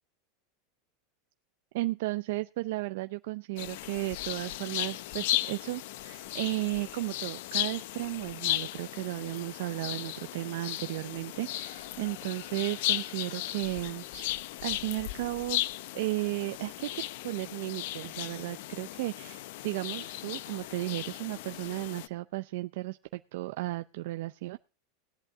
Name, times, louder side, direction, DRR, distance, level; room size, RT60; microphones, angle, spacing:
voice 1, 1.7-14.3 14.6-15.7 15.9-24.6, right 19 dB, 60° right, 9 dB, 0.5 m, -34 dB
sound 1, 3.6-22.1, left 15 dB, 60° left, 0.6 m, -36 dB
17.5 x 11.0 x 3.5 m, 0.32 s
supercardioid pair, 170°, 0 cm